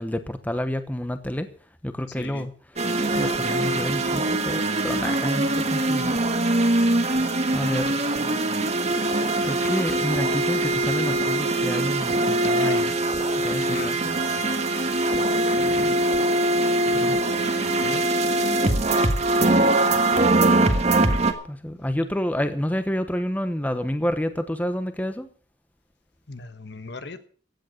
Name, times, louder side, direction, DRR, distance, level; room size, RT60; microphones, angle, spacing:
voice 1, 0.0-1.5 1.8-2.5 3.2-6.4 7.5-8.0 9.4-12.9 13.4-14.2 15.6-16.0 16.9-17.2 21.5-25.3, equal, 10° left, 1.0 m, -29 dB
voice 2, 2.2-2.5 7.1-7.3 12.6-12.9 13.4-14.4 16.8-18.0 18.4-18.6 26.3-27.3, left 3 dB, 60° left, 1.3 m, -38 dB
sound 1, 2.8-21.3, right 2 dB, 35° right, 1.5 m, -22 dB
16.0 x 9.3 x 6.6 m
head